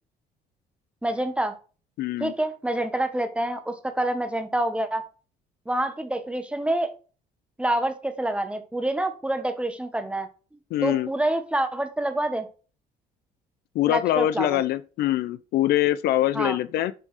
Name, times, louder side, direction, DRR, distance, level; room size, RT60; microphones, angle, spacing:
voice 1, 1.0-1.5 2.2-5.0 5.7-6.9 7.6-10.3 10.8-12.5 13.9-14.6 16.3-16.6, right 1 dB, 5° right, 1.1 m, -27 dB
voice 2, 2.0-2.3 10.7-11.1 13.7-16.9, left 13 dB, 70° left, 0.4 m, -24 dB
7.3 x 3.9 x 4.7 m
cardioid pair, 110°, 17 cm